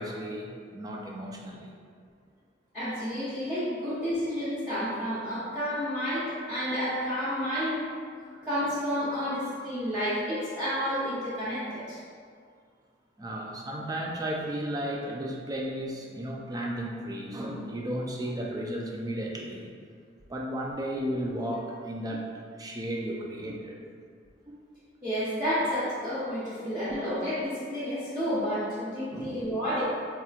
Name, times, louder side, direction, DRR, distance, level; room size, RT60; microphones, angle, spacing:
voice 1, 0.0-1.7 8.3-8.5 13.2-19.7 20.3-23.8 24.5-24.6 29.1-29.5, right 1 dB, 20° right, -1 dB, 0.4 m, -34 dB
voice 2, 2.7-7.8 8.2-12.0 25.0-29.8, equal, 5° right, -14 dB, 0.8 m, -30 dB
4.6 x 2.9 x 2.4 m, 2.1 s
head